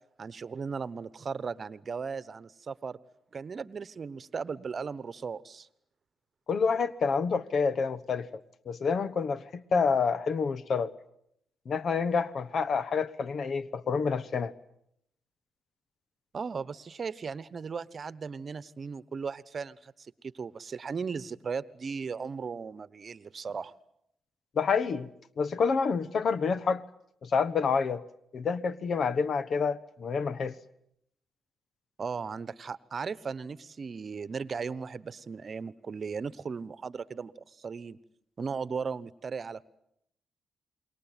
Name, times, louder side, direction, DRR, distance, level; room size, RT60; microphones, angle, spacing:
voice 1, 0.2-3.0 3.3-5.7 16.3-23.7 32.0-38.0 38.4-39.7, right 5 dB, 50° right, 17 dB, 1.1 m, -37 dB
voice 2, 6.5-8.3 8.7-10.9 11.7-14.5 24.5-25.1 25.4-26.8 27.2-28.0 28.3-30.5, left 5 dB, 60° left, 16 dB, 1.2 m, -28 dB
28.0 x 22.0 x 9.2 m, 0.77 s
supercardioid pair, 55°, 0 cm